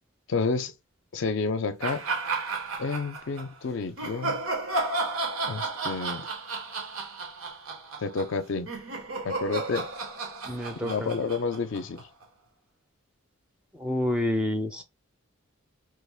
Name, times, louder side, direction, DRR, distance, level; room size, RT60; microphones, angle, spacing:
voice 1, 0.3-0.7 1.1-2.0 2.8-4.4 5.5-6.3 8.0-8.7 9.2-9.9 10.7-12.1, left 4 dB, 65° left, 0.4 m, -30 dB
sound 1, 1.8-3.5 4.0-12.2, right 3 dB, 85° right, 0.9 m, -33 dB
voice 2, 10.5-11.1 13.7-14.8, left 1 dB, 5° right, 0.4 m, -28 dB
3.3 x 2.4 x 3.3 m
head